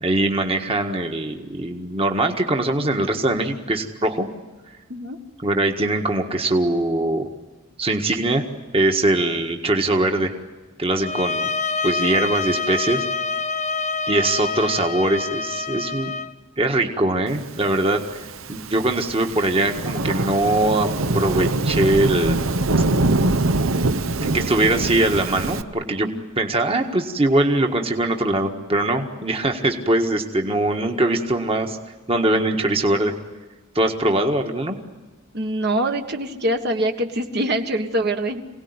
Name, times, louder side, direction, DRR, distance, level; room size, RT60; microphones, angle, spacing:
voice 1, 0.0-4.3 5.4-7.2 7.8-8.4 8.7-10.3 10.8-11.5 11.8-13.0 14.1-16.1 16.6-18.2 18.5-22.4 24.2-26.1 26.4-31.8 32.1-33.1 33.7-34.8, right 2 dB, 25° right, 4 dB, 1.6 m, -21 dB
sound 1, 11.0-16.3, left 4 dB, 35° left, 0.7 m, -26 dB
Thunderstorm / Rain, 17.9-25.6, right 2 dB, 70° right, 1.0 m, -23 dB
voice 2, 35.3-38.4, right 1 dB, 50° right, 5 dB, 1.6 m, -24 dB
27.0 x 18.5 x 9.7 m, 1.3 s
head